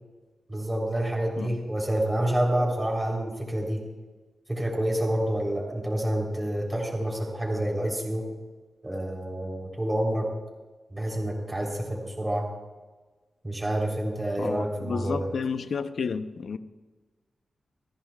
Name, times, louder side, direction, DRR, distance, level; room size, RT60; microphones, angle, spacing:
voice 1, 0.5-3.8 4.5-8.2 8.8-10.3 10.9-12.5 13.4-15.3, right 1 dB, 15° right, 3.4 m, -28 dB
voice 2, 14.4-16.6, left 5 dB, 70° left, 0.7 m, -31 dB
28.5 x 10.5 x 2.3 m
wide cardioid pair, 85°, 0 cm